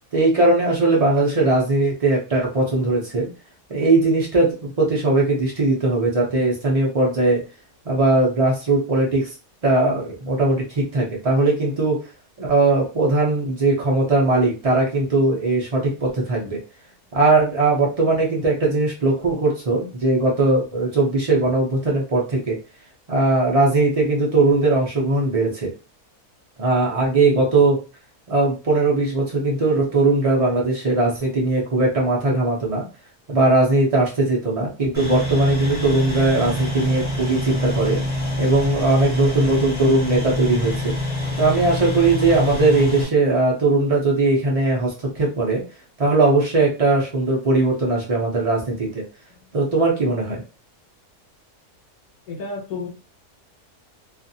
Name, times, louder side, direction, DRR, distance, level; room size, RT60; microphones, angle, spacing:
voice 1, 0.1-3.3 3.7-7.4 7.9-9.3 9.6-12.0 12.4-16.6 17.1-22.6 23.1-25.7 26.6-27.8 28.3-32.9 33.3-38.0 38.4-41.0 41.4-45.6 46.0-49.0 49.5-50.4, right 2 dB, 60° right, -3 dB, 0.3 m, -19 dB
sound 1, 34.9-43.0, left 1 dB, 10° left, 0.8 m, -26 dB
voice 2, 52.3-52.9, left 4 dB, 75° left, 1 dB, 1.4 m, -30 dB
2.5 x 2.4 x 2.7 m, 0.32 s
omnidirectional pair, 1.7 m